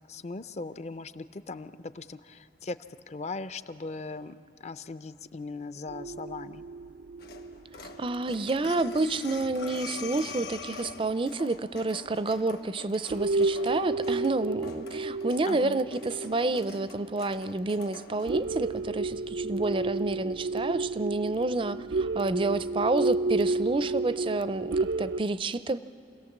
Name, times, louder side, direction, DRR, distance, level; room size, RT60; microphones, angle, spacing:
voice 1, 0.1-2.8 3.1-4.4 4.6-6.6 15.5-15.8, left 3 dB, 40° left, 13 dB, 0.5 m, -39 dB
sound 1, 5.9-9.8 10.3-10.4 11.4-11.5 12.0-12.1 12.6-12.8 13.1-25.2, right 3 dB, 85° right, 0.5 m, -32 dB
sound 2, 7.2-18.3, left 4 dB, 60° left, 1.4 m, -49 dB
voice 2, 8.0-25.8, right 2 dB, 30° right, 14 dB, 0.4 m, -29 dB
Breathing, 8.6-11.2, left 5 dB, 80° left, 0.9 m, -39 dB
27.5 x 17.5 x 7.3 m, 2.7 s
head